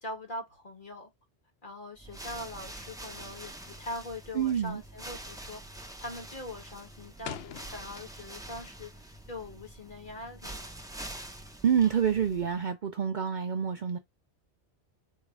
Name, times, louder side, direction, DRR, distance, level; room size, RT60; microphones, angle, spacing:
voice 1, 0.0-1.1 1.6-10.6, left 1 dB, 45° left, 1.7 m, -42 dB
sound 1, 2.0-12.6, right 1 dB, 5° right, 0.7 m, -45 dB
voice 2, 4.3-4.8 11.6-14.0, right 8 dB, 55° right, 0.6 m, -27 dB
sound 2, 7.2-8.5 8.8-10.3, left 9 dB, 65° left, 0.8 m, -45 dB
4.7 x 2.4 x 4.5 m
omnidirectional pair, 1.2 m